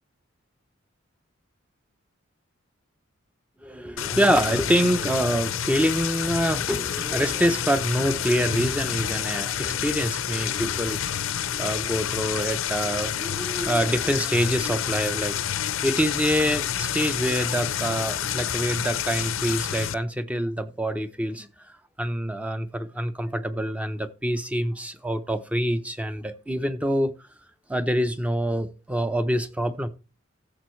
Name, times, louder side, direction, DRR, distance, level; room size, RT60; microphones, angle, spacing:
voice 1, 3.6-21.5 22.0-27.1 27.7-29.9, equal, 5° right, 0.6 m, -26 dB
zoo watertable, 4.0-19.9, left 9 dB, 80° left, 0.5 m, -29 dB
15.0 x 7.0 x 3.1 m
head